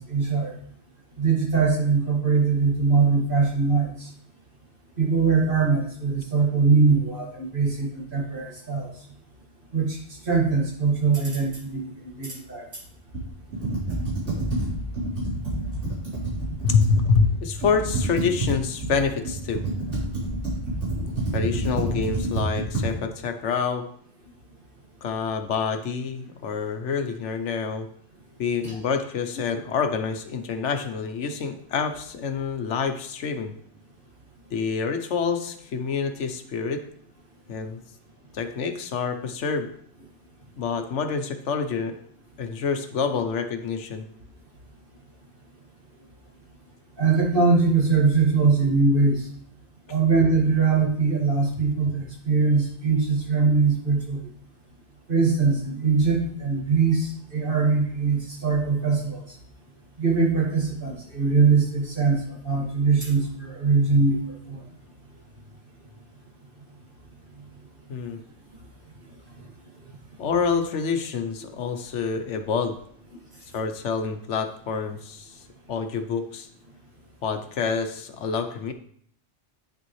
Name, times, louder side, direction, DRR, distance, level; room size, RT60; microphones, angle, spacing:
voice 1, 0.1-0.5 1.2-3.9 5.0-8.9 9.7-10.0 10.3-11.9 12.2-12.6 28.6-28.8 47.0-49.2 49.9-54.2 55.1-59.2 60.0-64.2 64.5-64.6, right 4 dB, 50° right, -2 dB, 2.2 m, -22 dB
Computer keyboard, 13.1-17.3 17.6-22.9, right 2 dB, 80° right, 3.7 m, -28 dB
voice 2, 16.6-19.6 21.3-23.9 25.0-27.9 28.4-33.5 34.5-36.8 37.5-37.8 38.3-39.7 40.6-41.9 42.4-44.0 67.9-68.2 70.2-72.8 73.5-75.4 75.7-76.5 77.2-78.7, left 5 dB, 80° left, 7 dB, 1.1 m, -27 dB
9.1 x 6.8 x 3.1 m, 0.63 s
omnidirectional pair, 1.2 m